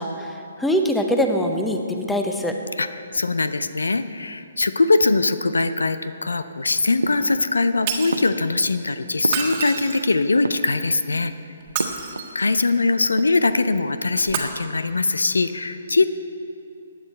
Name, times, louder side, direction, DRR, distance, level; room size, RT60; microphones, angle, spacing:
voice 1, 0.0-2.6, equal, 5° left, 4 dB, 0.9 m, -23 dB
voice 2, 3.1-11.3 12.3-16.1, left 3 dB, 80° left, 12 dB, 0.5 m, -21 dB
sound 1, 7.0-7.7 8.1-10.1 10.3-11.2 11.8-12.8 13.0-13.6, right 2 dB, 85° right, 0.6 m, -32 dB
Shatter, 7.9-8.3 9.2-10.3 11.6-12.5 14.2-14.4, right 7 dB, 35° right, 1.5 m, -28 dB
15.5 x 9.6 x 4.3 m, 2.6 s
figure-of-eight pair, 130°, 0 cm